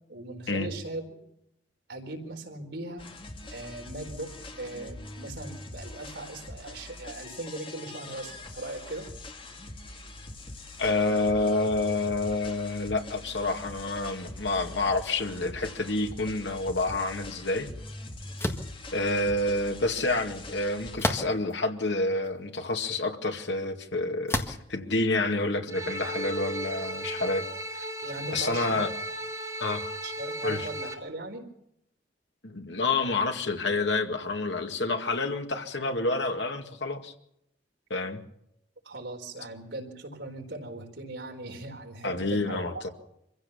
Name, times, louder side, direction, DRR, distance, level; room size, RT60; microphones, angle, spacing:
voice 1, 0.1-1.2 1.9-3.0 3.5-9.1 28.0-28.8 30.0-31.5 38.8-42.9, right 2 dB, 70° right, 2 dB, 4.2 m, -39 dB
sound 1, 3.0-20.9, left 2 dB, 30° left, 1.8 m, -43 dB
voice 2, 10.8-17.7 18.9-27.5 27.7-27.9 28.3-28.9 29.6-29.9 30.4-30.7 32.4-37.1 37.9-38.2 42.0-42.9, left 2 dB, 80° left, 5 dB, 2.2 m, -28 dB
sound 2, 18.4-18.7 21.0-21.5 22.3-22.4 24.3-24.7, left 1 dB, 15° left, 1.7 m, -29 dB
sound 3, 25.7-30.9, right 1 dB, 15° right, 2.6 m, -35 dB
25.5 x 15.5 x 7.1 m, 0.78 s
head